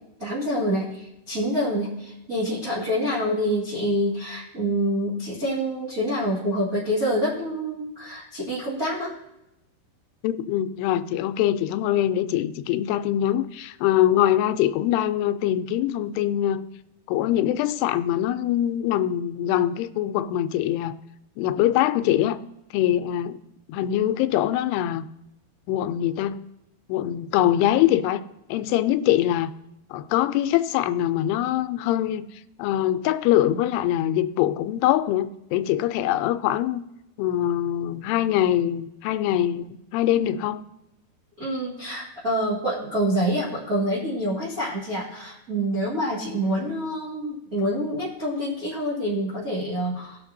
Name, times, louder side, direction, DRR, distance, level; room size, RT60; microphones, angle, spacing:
voice 1, 0.2-9.2 41.4-50.2, equal, 30° right, 1.7 m, -26 dB
voice 2, 10.2-16.6 17.1-20.9 21.4-22.4 22.7-23.4 23.7-25.0 25.7-26.4 26.9-28.2 28.5-29.5 29.9-32.3 32.6-36.8 37.2-40.6, left 12 dB, 85° left, 2.6 m, -23 dB
19.5 x 6.5 x 2.6 m
omnidirectional pair, 4.7 m